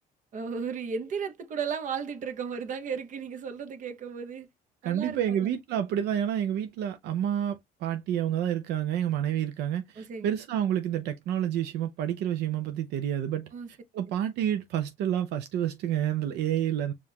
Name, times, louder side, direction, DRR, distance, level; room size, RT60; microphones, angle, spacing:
voice 1, 0.3-4.5 4.8-5.5 10.0-10.3 13.5-13.7, right 6 dB, 50° right, 0.9 m, -35 dB
voice 2, 4.8-13.5 13.9-16.9, right 10 dB, 80° right, 0.6 m, -29 dB
5.1 x 2.5 x 2.8 m
cardioid pair, 110°, 17 cm